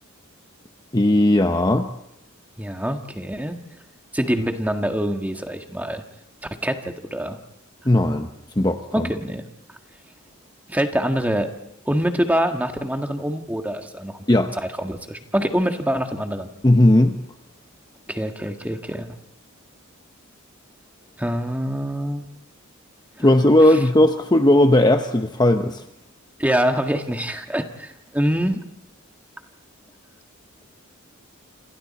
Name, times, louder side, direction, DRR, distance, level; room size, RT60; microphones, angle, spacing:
voice 1, 0.9-1.9 7.8-8.3 8.6-9.1 14.3-14.6 16.6-17.2 23.2-25.8, left 1 dB, 20° left, 6 dB, 0.9 m, -17 dB
voice 2, 2.6-3.6 4.1-6.0 6.6-7.4 8.9-9.4 10.7-11.5 11.8-14.2 14.8-16.5 18.1-19.1 21.2-22.3 23.2-23.3 26.4-28.6, equal, 5° right, 5 dB, 1.6 m, -25 dB
28.0 x 27.5 x 4.2 m, 0.77 s
head